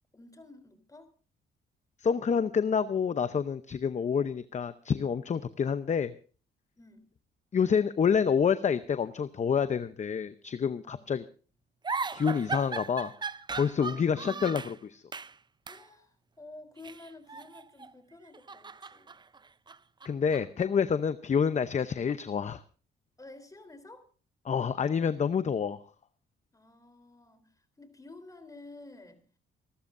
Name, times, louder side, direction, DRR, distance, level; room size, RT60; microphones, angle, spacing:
voice 1, 0.1-1.1 6.8-7.1 10.8-11.1 13.9-14.8 15.7-19.2 23.2-24.1 26.5-29.2, left 2 dB, 15° left, 10 dB, 3.6 m, -51 dB
voice 2, 2.0-6.1 7.5-11.2 12.1-13.1 13.6-15.0 20.0-22.6 24.4-25.8, left 6 dB, 35° left, 13 dB, 0.7 m, -28 dB
sound 1, 11.8-14.8 15.1-15.4 15.7-15.9 16.8-17.9 18.3-20.6, right 4 dB, 20° right, 0.6 m, -38 dB
28.5 x 12.5 x 2.6 m, 0.38 s
cardioid pair, 90°, 20 cm